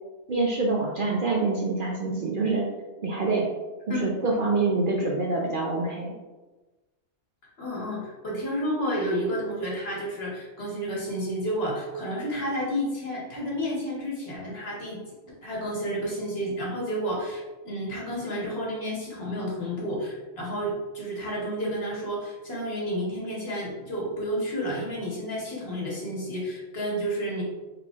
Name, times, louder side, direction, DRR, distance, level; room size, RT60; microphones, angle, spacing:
voice 1, 0.3-2.6 3.0-3.5 3.9-6.2, right 3 dB, 55° right, -2 dB, 0.6 m, -26 dB
voice 2, 7.6-15.0 15.4-27.4, equal, 55° left, -4 dB, 1.5 m, -31 dB
4.4 x 3.9 x 2.4 m, 1.1 s
omnidirectional pair, 1.3 m